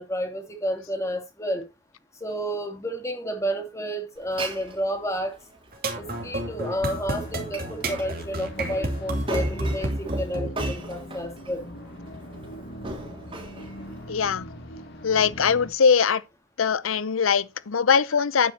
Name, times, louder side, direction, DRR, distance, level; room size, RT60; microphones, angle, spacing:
voice 1, 0.0-1.6 2.2-5.4 6.0-11.6, equal, 15° left, 2.8 m, -30 dB
Glass, 4.2-14.1, right 1 dB, 25° right, 3.6 m, -39 dB
sound 1, 5.7-10.7, right 1 dB, 45° right, 2.7 m, -29 dB
sound 2, 5.9-15.7, equal, 55° left, 2.8 m, -41 dB
voice 2, 14.1-14.5 15.0-16.2 16.6-18.5, left 6 dB, 85° left, 0.6 m, -21 dB
11.5 x 9.4 x 2.9 m
head